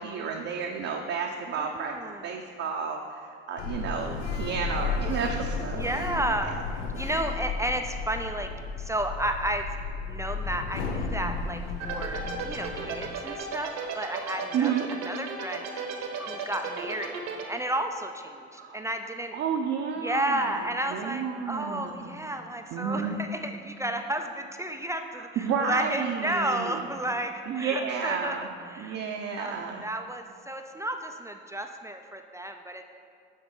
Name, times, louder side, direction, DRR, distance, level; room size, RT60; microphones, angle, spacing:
voice 1, 0.0-1.9 2.2-6.0 6.4-6.6 6.9-7.1 14.5-14.9 18.5-18.8 19.3-20.5 20.9-22.2 22.7-23.2 25.1-26.9 27.5-28.5 28.8-29.9, right 6 dB, 45° right, 0 dB, 0.6 m, -31 dB
voice 2, 1.6-2.3 4.7-5.1 5.8-6.7 6.9-8.5 8.8-9.7 10.1-14.7 15.1-19.4 20.0-28.4 28.6-29.0 29.4-29.5 29.8-32.8, right 1 dB, 10° right, 5 dB, 0.3 m, -32 dB
Sliding door, 3.6-13.1, left 4 dB, 90° left, 0.6 m, -33 dB
sound 1, 11.8-17.4, right 6 dB, 65° right, 1.0 m, -34 dB
9.3 x 3.9 x 3.8 m, 2.3 s
hypercardioid pair, 75°, 33 cm